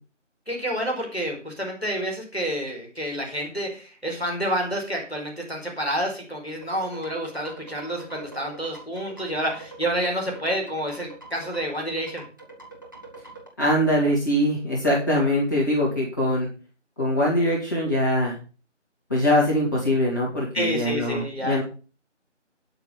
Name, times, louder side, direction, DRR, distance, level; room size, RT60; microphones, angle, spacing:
voice 1, 0.4-12.2 20.5-21.6, equal, ahead, -22 dB, 2.8 m, -29 dB
sound 1, 6.6-13.5, right 3 dB, 15° right, 1.5 m, -43 dB
voice 2, 13.6-16.5 17.0-18.4 19.1-21.6, left 1 dB, 15° left, -6 dB, 2.7 m, -22 dB
12.0 x 5.9 x 8.0 m, 0.36 s
figure-of-eight pair, 170°, 36 cm